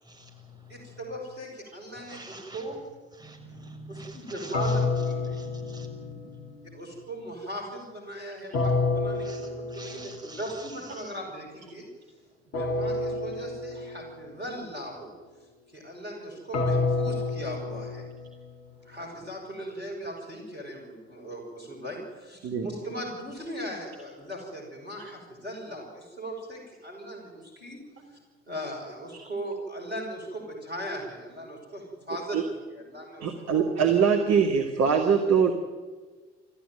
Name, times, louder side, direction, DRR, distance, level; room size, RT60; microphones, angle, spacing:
voice 1, 0.0-1.3 1.9-2.8 3.1-6.9 9.2-11.2 18.9-19.0, right 1 dB, 10° right, 1 dB, 6.1 m, -47 dB
voice 2, 0.7-2.8 3.9-5.4 6.7-11.9 12.5-15.1 15.7-18.0 18.9-27.8 28.1-28.2 28.5-32.4 32.7-33.7, equal, 90° right, -3 dB, 5.5 m, -38 dB
sound 1, 4.5-6.6 8.5-10.4 12.5-14.4 16.5-18.7, left 3 dB, 50° left, 2.4 m, -29 dB
voice 3, 33.2-35.5, right 6 dB, 50° right, 3 dB, 2.3 m, -23 dB
29.5 x 14.5 x 9.2 m, 1.4 s
figure-of-eight pair, 50°, 32 cm